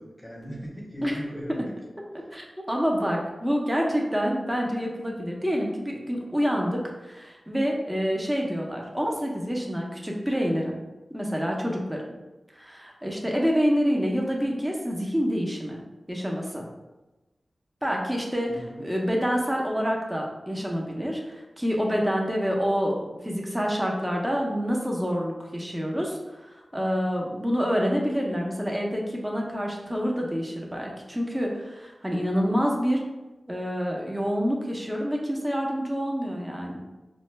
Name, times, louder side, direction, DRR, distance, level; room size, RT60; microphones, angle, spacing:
voice 1, 0.0-1.7 18.5-18.8, equal, 15° left, -2 dB, 0.9 m, -38 dB
voice 2, 2.3-10.7 11.1-12.0 12.5-15.8 16.1-16.7 17.8-33.1 33.5-36.8, equal, 10° right, -1 dB, 0.6 m, -27 dB
4.3 x 2.1 x 3.1 m, 1.1 s
wide cardioid pair, 75°, 0 cm